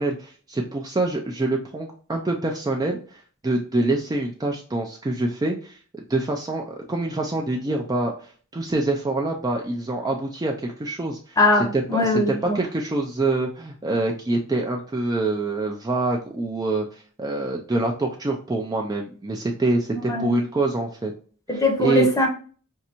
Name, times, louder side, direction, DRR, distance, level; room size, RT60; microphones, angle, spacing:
voice 1, 0.0-11.4 11.7-21.1 21.5-22.1, right 2 dB, 15° right, 0.4 m, -26 dB
voice 2, 11.4-12.6 19.9-20.3 21.5-22.3, left 2 dB, 15° left, 0.7 m, -21 dB
5.3 x 2.5 x 2.9 m
head